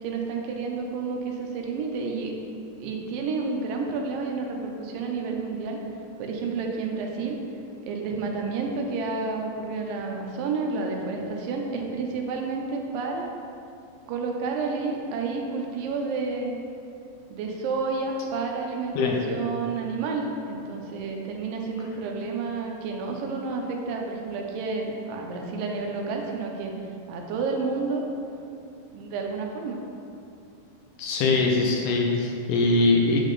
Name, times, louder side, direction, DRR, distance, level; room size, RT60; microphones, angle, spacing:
voice 1, 0.0-2.3 2.8-5.8 6.2-7.4 7.8-13.3 14.1-16.6 17.3-26.7 27.1-28.0 28.9-29.8, right 4 dB, 85° right, 1 dB, 2.4 m, -30 dB
voice 2, 31.0-33.2, left 3 dB, 75° left, 0 dB, 2.0 m, -22 dB
8.1 x 3.6 x 4.0 m, 2.7 s
omnidirectional pair, 3.9 m